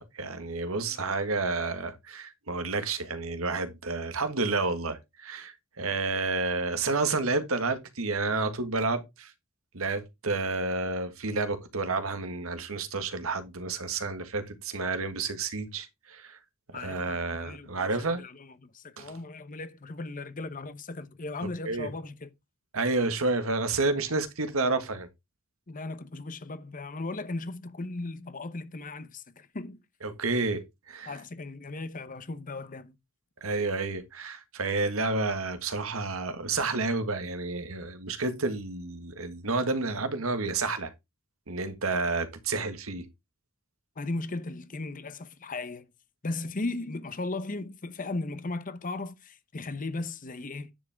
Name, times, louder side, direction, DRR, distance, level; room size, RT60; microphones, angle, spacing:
voice 1, 0.0-9.3 9.7-16.4 16.7-18.2 19.0-19.1 21.6-21.9 22.7-25.1 30.0-31.1 33.4-40.9 41.5-43.0, right 3 dB, 80° right, 1.6 m, -30 dB
voice 2, 16.7-22.3 25.7-29.8 31.1-32.9 44.0-45.9 46.2-50.7, left 2 dB, 40° left, 0.9 m, -37 dB
10.0 x 7.4 x 3.5 m
head